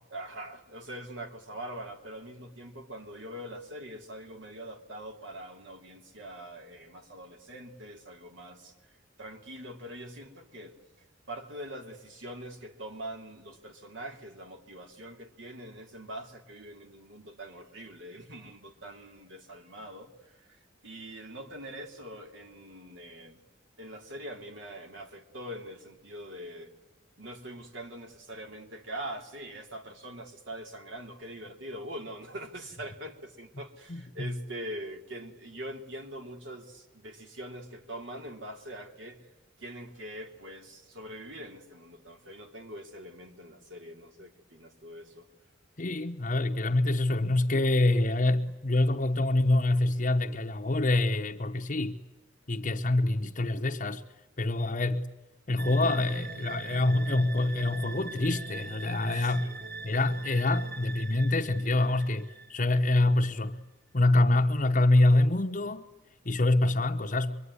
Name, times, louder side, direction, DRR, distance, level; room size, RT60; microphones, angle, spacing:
voice 1, 0.1-8.7 9.2-10.8 11.3-23.4 23.8-26.7 27.2-39.2 39.6-45.3 59.1-59.6, right 1 dB, 75° right, 3.0 m, -43 dB
voice 2, 33.9-34.4 45.8-52.0 52.5-54.0 54.4-55.1 55.5-59.5 59.8-63.6 63.9-65.9 66.2-67.4, left 2 dB, 40° left, 0.9 m, -26 dB
sound 1, 55.6-63.1, right 3 dB, 50° right, 1.8 m, -42 dB
25.5 x 23.0 x 9.7 m
head